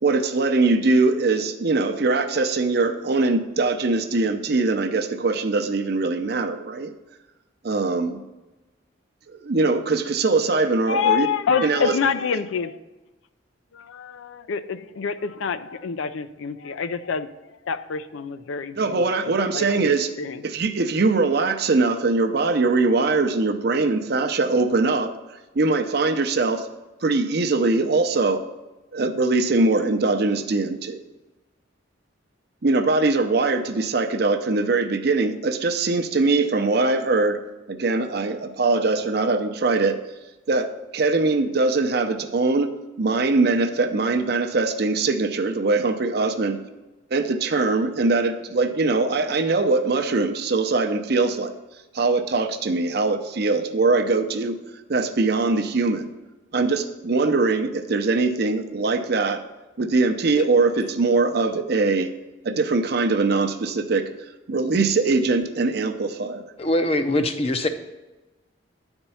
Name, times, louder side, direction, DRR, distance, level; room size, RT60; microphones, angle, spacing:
voice 1, 0.0-6.9 7.6-8.2 9.3-11.3 11.6-12.0 18.8-20.1 20.4-26.7 27.0-28.4 28.9-31.0 32.6-37.4 37.7-40.2 40.5-46.6 47.1-56.1 56.5-59.4 59.8-62.1 62.4-66.5, right 3 dB, 50° right, 8 dB, 0.6 m, -22 dB
voice 2, 10.9-12.8 13.7-19.0 19.5-20.4, left 6 dB, 80° left, 12 dB, 0.5 m, -27 dB
voice 3, 66.6-67.7, left 1 dB, 30° left, 8 dB, 0.6 m, -22 dB
9.9 x 4.4 x 5.5 m, 1.1 s
head